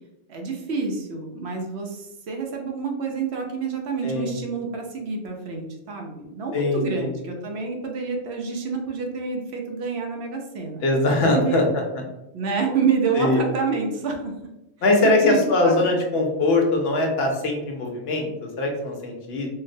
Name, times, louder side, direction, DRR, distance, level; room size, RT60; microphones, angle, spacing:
voice 1, 0.3-11.7 12.3-14.3 15.0-15.4 15.6-16.0, right 5 dB, 70° right, 1 dB, 0.9 m, -28 dB
voice 2, 4.0-4.4 6.5-7.1 10.8-12.0 13.1-13.4 14.8-19.5, left 2 dB, 65° left, 1 dB, 0.8 m, -22 dB
3.8 x 2.1 x 2.6 m, 0.93 s
omnidirectional pair, 1.2 m